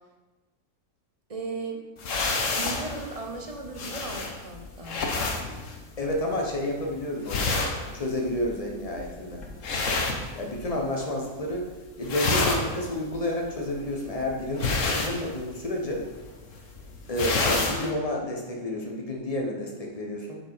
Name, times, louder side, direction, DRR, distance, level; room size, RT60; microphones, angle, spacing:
voice 1, 1.3-1.8 2.6-5.1, right 3 dB, 30° right, 2 dB, 0.8 m, -36 dB
sound 1, 2.0-10.9 11.2-11.7 11.9-17.9, left 3 dB, 65° left, 1.4 m, -30 dB
voice 2, 6.0-7.7 7.9-9.4 10.3-11.7 12.0-16.0 17.1-20.4, left 1 dB, 30° left, 0 dB, 1.1 m, -30 dB
7.5 x 5.1 x 4.9 m, 1.2 s
omnidirectional pair, 1.4 m